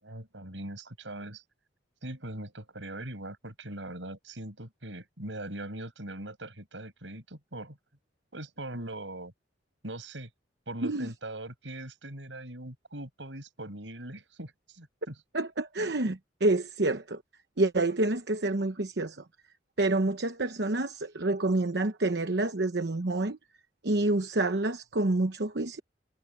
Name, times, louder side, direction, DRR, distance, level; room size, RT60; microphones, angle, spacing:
voice 1, 0.0-1.4 2.0-7.8 8.3-9.3 9.8-10.3 10.7-15.2, right 1 dB, 85° right, 7.4 m, -41 dB
voice 2, 15.3-17.2 17.6-19.2 19.8-23.4 23.8-25.8, right 2 dB, 65° right, 1.0 m, -28 dB
head